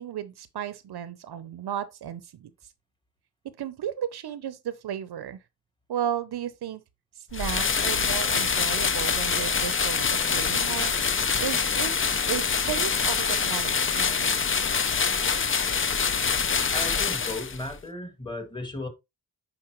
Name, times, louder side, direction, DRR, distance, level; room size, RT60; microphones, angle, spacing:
voice 1, 0.0-2.5 3.4-5.4 5.9-6.8 7.2-12.0 12.3-14.3, right 10 dB, 70° right, 0.7 m, -34 dB
sound 1, 7.3-17.7, left 5 dB, 30° left, 0.6 m, -25 dB
voice 2, 16.7-18.9, left 2 dB, 10° left, 2.0 m, -35 dB
9.7 x 4.5 x 3.1 m
wide cardioid pair, 120°, 41 cm